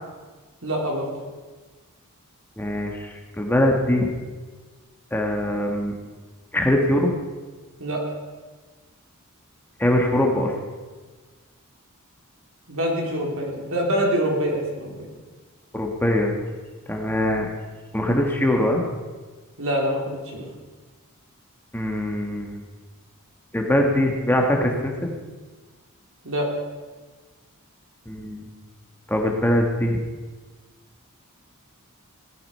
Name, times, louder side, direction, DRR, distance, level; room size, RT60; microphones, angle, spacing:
voice 1, 0.6-1.1 7.8-8.0 12.7-15.1 19.6-20.5 26.2-26.5, equal, 65° right, -1 dB, 3.4 m, -25 dB
voice 2, 2.6-4.1 5.1-5.9 6.5-7.1 9.8-10.5 15.7-16.3 16.9-17.5 17.9-18.8 21.7-22.6 23.5-25.1 28.1-28.5 29.1-30.0, left 1 dB, 10° left, 1 dB, 1.4 m, -22 dB
17.0 x 11.5 x 5.5 m, 1.4 s
head